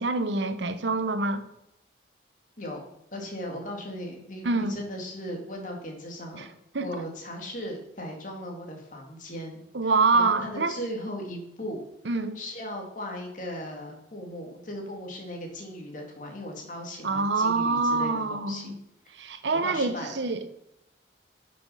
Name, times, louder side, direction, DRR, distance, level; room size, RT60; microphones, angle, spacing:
voice 1, 0.0-1.4 4.4-4.8 6.4-6.5 6.7-6.9 9.7-10.8 12.0-12.4 17.0-18.8 19.1-20.4, right 3 dB, 80° right, 0.9 m, -26 dB
voice 2, 2.6-6.6 6.8-11.8 12.3-18.7 19.6-20.2, equal, 45° left, 2.2 m, -37 dB
11.0 x 6.0 x 5.6 m
head